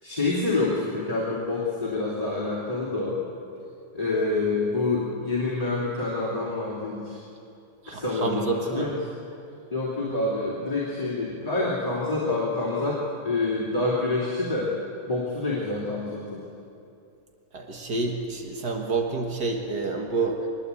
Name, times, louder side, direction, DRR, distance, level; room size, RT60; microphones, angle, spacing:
voice 1, 0.0-3.2 3.9-7.2 7.9-9.0 9.7-14.7 15.1-16.4, left 2 dB, 20° left, -6 dB, 3.2 m, -27 dB
voice 2, 7.8-8.9 15.5-15.6 17.5-20.5, right 3 dB, 75° right, 2 dB, 2.2 m, -29 dB
23.5 x 20.0 x 8.4 m, 2.6 s
omnidirectional pair, 1.7 m